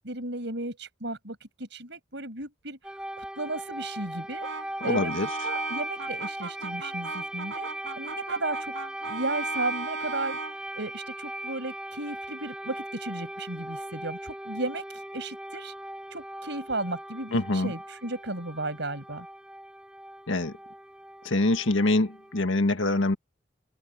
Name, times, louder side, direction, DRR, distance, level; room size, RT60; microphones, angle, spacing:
voice 1, 0.0-8.7 9.1-15.7 16.1-19.3, right 2 dB, 65° right, 6.8 m, -35 dB
sound 1, 2.8-22.4, right 1 dB, 5° right, 4.0 m, -38 dB
Brass instrument, 4.4-10.6, right 4 dB, 80° right, 6.1 m, -37 dB
voice 2, 4.8-5.3 17.3-17.7 20.3-20.5 21.2-23.2, left 2 dB, 85° left, 1.7 m, -24 dB
head